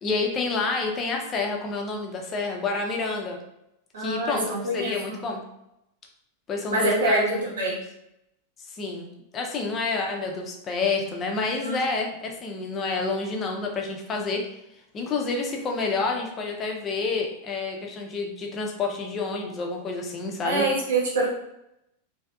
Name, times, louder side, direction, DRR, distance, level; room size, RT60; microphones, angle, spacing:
voice 1, 0.0-3.4 4.0-5.4 6.5-7.4 7.7-7.8 8.7-14.5 14.9-20.7, left 4 dB, 25° left, 1 dB, 0.6 m, -29 dB
voice 2, 3.9-5.1 6.7-7.8 11.5-11.8 20.4-21.3, right 2 dB, 60° right, -5 dB, 0.9 m, -25 dB
3.4 x 2.7 x 2.3 m, 0.84 s
figure-of-eight pair, 90°, 0 cm